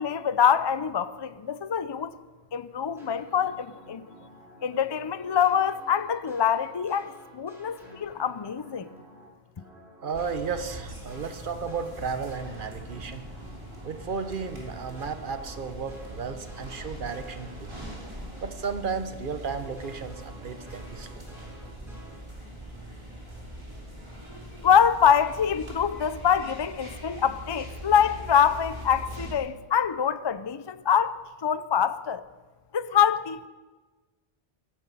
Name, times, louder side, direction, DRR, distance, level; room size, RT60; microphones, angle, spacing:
voice 1, 0.0-2.1 2.5-4.0 4.6-8.9 24.6-31.2 31.4-32.3 32.7-33.5, left 8 dB, 45° left, 0.3 m, -25 dB
sound 1, 3.0-9.3 9.6-18.9 19.2-22.2, right 1 dB, ahead, 6.1 m, -51 dB
voice 2, 10.0-13.2 13.8-18.0 18.4-21.2, right 5 dB, 55° right, 1.1 m, -34 dB
sound 2, 10.1-29.3, equal, 25° right, 3.3 m, -42 dB
15.5 x 13.5 x 5.4 m
omnidirectional pair, 1.1 m